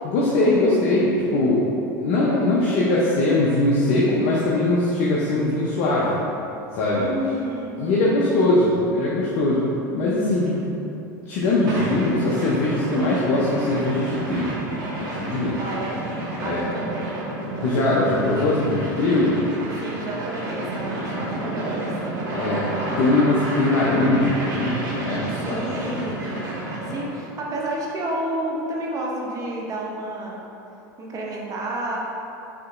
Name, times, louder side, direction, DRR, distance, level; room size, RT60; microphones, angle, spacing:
voice 1, 0.0-1.6 2.0-6.2 6.7-7.1 7.8-9.6 9.9-10.6 11.3-14.6 15.0-15.6 16.4-16.6 17.6-19.4 22.3-26.0, left 2 dB, 60° left, -6 dB, 0.7 m, -21 dB
voice 2, 6.9-8.1 15.5-16.0 16.4-17.2 19.8-22.0 25.4-26.4 26.8-30.4 31.0-32.0, right 1 dB, 35° right, -3 dB, 0.8 m, -30 dB
sound 1, 11.7-27.1, right 1 dB, 85° right, 1.0 m, -30 dB
5.8 x 2.9 x 2.5 m, 2.9 s
hypercardioid pair, 100°, 10 cm